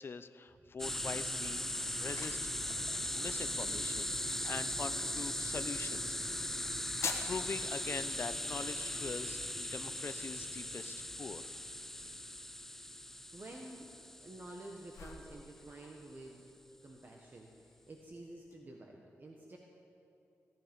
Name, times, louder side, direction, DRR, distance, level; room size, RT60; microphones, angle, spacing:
voice 1, 0.0-1.6 2.0-2.4 2.6-6.4 7.3-11.5, left 5 dB, 50° left, 12 dB, 0.6 m, -43 dB
sound 1, 0.8-15.3, left 1 dB, 5° left, 0.4 m, -39 dB
sound 2, 1.0-18.6, left 5 dB, 70° left, 1.3 m, -51 dB
voice 2, 13.3-13.9 14.2-16.5 16.8-19.6, right 1 dB, 40° right, 0 dB, 1.4 m, -50 dB
17.0 x 12.5 x 5.3 m, 2.9 s
wide cardioid pair, 100°, 5 cm